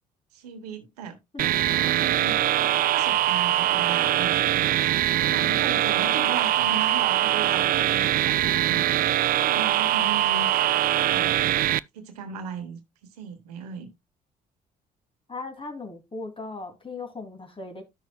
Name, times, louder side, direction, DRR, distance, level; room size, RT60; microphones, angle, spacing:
voice 1, 0.3-1.2 1.7-4.6 5.2-8.8 9.3-10.5 11.1-11.5 11.9-13.9, right 6 dB, 90° right, 1.2 m, -37 dB
sound 1, 1.4-11.8, right 13 dB, 50° right, 0.4 m, -22 dB
voice 2, 15.3-17.8, left 3 dB, 25° left, 2.7 m, -37 dB
13.5 x 6.3 x 2.2 m
hypercardioid pair, 50°, 19 cm